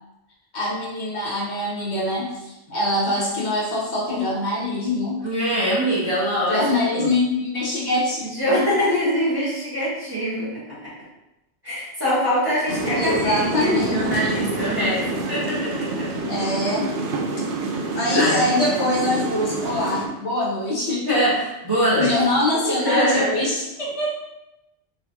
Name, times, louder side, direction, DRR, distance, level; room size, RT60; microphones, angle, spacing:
voice 1, 0.5-5.2 6.5-8.7 12.9-14.2 16.3-16.9 17.9-21.2 21.7-24.2, left 1 dB, 75° left, -4 dB, 1.3 m, -24 dB
voice 2, 5.2-7.1 8.3-10.9 11.6-16.1 17.8-18.4 21.1-22.1 22.8-23.4, equal, 20° right, -9 dB, 1.4 m, -23 dB
sound 1, 12.7-20.1, right 3 dB, 55° right, 0.7 m, -27 dB
4.0 x 3.0 x 2.7 m, 0.94 s
omnidirectional pair, 1.2 m